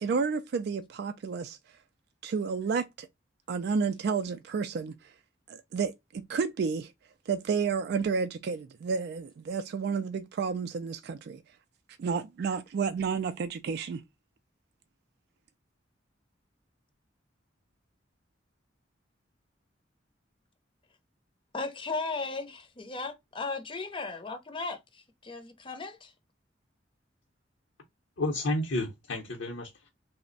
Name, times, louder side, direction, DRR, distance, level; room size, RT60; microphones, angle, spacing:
voice 1, 0.0-1.6 2.2-3.1 3.5-5.1 5.5-6.9 7.3-11.4 12.0-14.0, right 5 dB, 60° right, 0.3 m, -31 dB
voice 2, 21.5-26.1, left 3 dB, 25° left, 0.6 m, -36 dB
voice 3, 28.2-29.9, left 2 dB, 75° left, 0.8 m, -31 dB
3.3 x 2.1 x 3.8 m
head